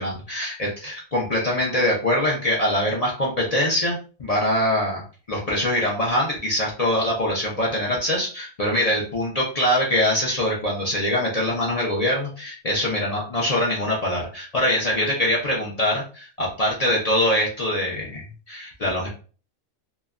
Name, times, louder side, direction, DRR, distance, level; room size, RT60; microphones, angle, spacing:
voice 1, 0.0-5.0 5.3-19.1, left 1 dB, 70° left, -4 dB, 0.3 m, -23 dB
3.0 x 2.2 x 2.3 m, 0.38 s
omnidirectional pair, 1.5 m